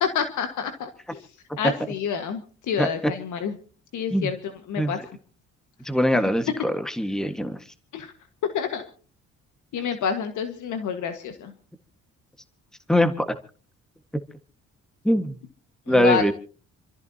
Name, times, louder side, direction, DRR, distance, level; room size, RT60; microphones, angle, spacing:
voice 1, 0.0-1.3 1.6-3.5 3.9-5.0 7.9-8.1 8.4-8.9 9.7-11.5 15.9-16.3, left 7 dB, 75° left, 7 dB, 1.6 m, -28 dB
voice 2, 5.8-7.6 12.9-13.2 15.0-15.3 15.9-16.3, equal, ahead, 8 dB, 1.5 m, -22 dB
27.5 x 14.5 x 2.8 m, 0.39 s
cardioid pair, 90°, 30 cm